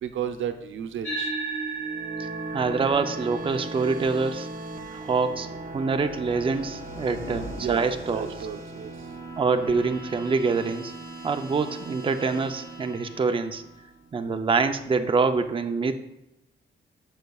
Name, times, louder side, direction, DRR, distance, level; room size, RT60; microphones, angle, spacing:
voice 1, 0.0-1.3 7.6-9.1, right 9 dB, 85° right, 7 dB, 0.7 m, -33 dB
sound 1, 1.0-9.8, right 4 dB, 70° left, 2.2 m, -38 dB
sound 2, 1.7-14.1, right 2 dB, 50° right, 1.0 m, -40 dB
voice 2, 2.2-4.5 4.9-5.5 5.7-8.3 9.4-10.9 11.2-13.6 14.1-15.9, right 4 dB, 25° right, 7 dB, 0.5 m, -25 dB
sound 3, 3.5-11.7, equal, 35° left, 2.5 m, -46 dB
13.0 x 6.5 x 2.4 m, 0.90 s
cardioid pair, 110°, 20 cm